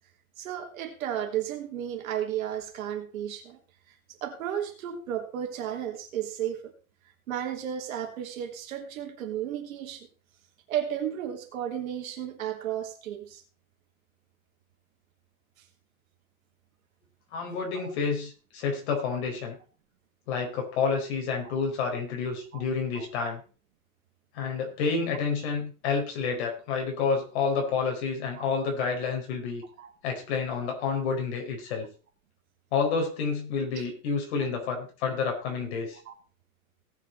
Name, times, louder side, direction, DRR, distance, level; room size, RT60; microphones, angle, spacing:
voice 1, 0.4-3.6 4.2-6.7 7.3-10.1 10.7-13.4 17.7-17.9 21.4-21.5 22.5-22.6 22.9-23.1 28.4-28.5 29.8-29.9 33.8-33.9 34.4-34.5 36.0-36.1, right 10 dB, 70° right, 3 dB, 3.1 m, -33 dB
voice 2, 17.3-19.6 20.3-23.4 24.3-29.6 30.0-31.9 32.7-36.0, left 5 dB, 50° left, 2 dB, 4.7 m, -29 dB
18.0 x 6.7 x 4.3 m, 0.35 s
supercardioid pair, 170°, 43 cm